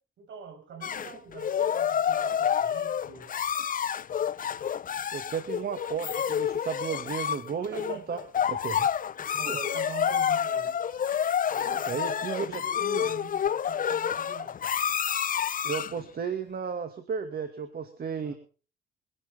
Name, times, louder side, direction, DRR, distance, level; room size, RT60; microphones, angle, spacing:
voice 1, 0.2-3.3 7.6-8.2 9.4-10.8 11.5-14.6 18.2-18.4, right 5 dB, 70° right, 6 dB, 6.4 m, -43 dB
sound 1, 0.8-16.0, left 8 dB, 45° left, 0.7 m, -29 dB
voice 2, 5.1-8.2 8.5-8.9 9.5-9.6 11.9-13.1 15.6-18.3, right 6 dB, 50° right, 8 dB, 2.3 m, -34 dB
23.5 x 11.5 x 3.7 m, 0.39 s
cardioid pair, 90°, 20 cm